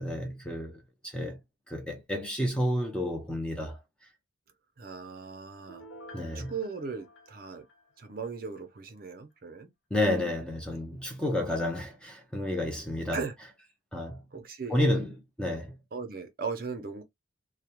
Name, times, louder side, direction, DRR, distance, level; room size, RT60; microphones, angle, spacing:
voice 1, 0.0-1.4 1.7-3.8 6.1-6.5 9.9-13.2 13.9-14.3 14.7-15.8, left 1 dB, 5° left, 0.4 m, -30 dB
voice 2, 4.8-5.9 6.3-7.7 8.0-9.7 12.4-12.6 13.1-13.3 14.3-14.8 15.9-17.0, right 5 dB, 45° right, 0.5 m, -38 dB
Piano, 5.7-8.4 8.8-8.9, equal, 85° left, 0.9 m, -51 dB
2.2 x 2.0 x 2.9 m
head